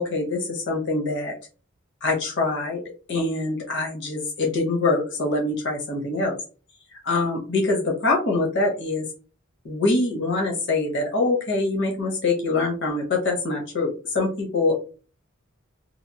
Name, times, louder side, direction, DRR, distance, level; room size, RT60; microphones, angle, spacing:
voice 1, 0.0-1.3 2.0-2.8 3.1-6.3 7.0-9.1 9.6-14.8, left 3 dB, 60° left, 0 dB, 0.8 m, -24 dB
2.8 x 2.4 x 2.7 m, 0.36 s
head